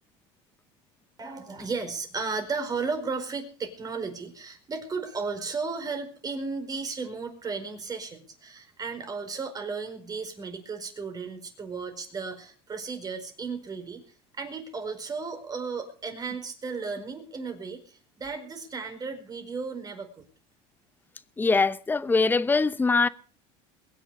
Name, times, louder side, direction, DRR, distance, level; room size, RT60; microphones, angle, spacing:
voice 1, 1.2-14.0 14.4-20.2, right 4 dB, 25° right, 4.7 m, -34 dB
voice 2, 21.4-23.1, left 4 dB, 15° left, 0.9 m, -22 dB
22.0 x 10.5 x 4.9 m
supercardioid pair, 120°, 14 cm